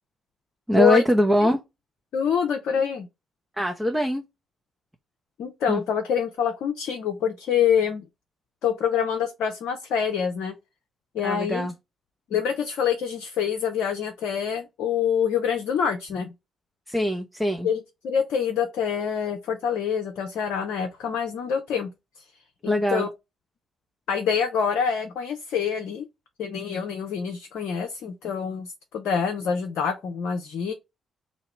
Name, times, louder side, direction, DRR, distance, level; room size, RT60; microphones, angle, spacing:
voice 1, 0.7-1.6 3.6-4.2 5.7-5.8 11.2-11.7 16.9-17.7 22.7-23.1, equal, 10° right, 0.8 m, -22 dB
voice 2, 2.1-3.1 5.4-8.0 8.6-10.6 11.1-11.7 12.3-16.3 17.6-21.9 22.6-23.1 24.1-26.1 26.4-30.7, left 7 dB, 65° left, 0.6 m, -26 dB
2.9 x 2.8 x 4.3 m
hypercardioid pair, 40°, 0 cm